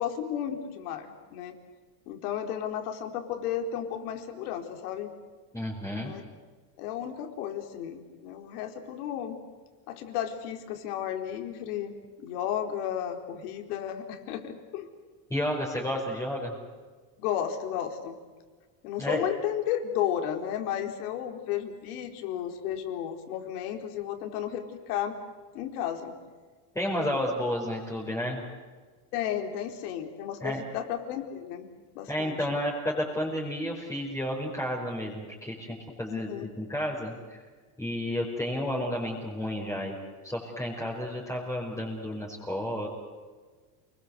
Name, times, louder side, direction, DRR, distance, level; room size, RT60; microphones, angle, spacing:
voice 1, 0.0-1.5 2.1-5.1 6.0-6.2 6.8-9.4 9.9-11.9 12.2-14.9 17.2-18.1 18.8-25.1 25.5-26.1 29.1-31.7 31.9-32.4 36.1-36.5, left 10 dB, 85° left, 5 dB, 4.3 m, -33 dB
voice 2, 5.5-6.1 15.3-16.5 19.0-19.3 26.7-28.4 30.4-30.6 32.1-36.3 36.6-37.4 37.8-40.0 40.2-42.9, equal, 5° left, -4 dB, 5.1 m, -31 dB
29.5 x 21.0 x 8.2 m, 1.5 s
cardioid pair, 155°, 44 cm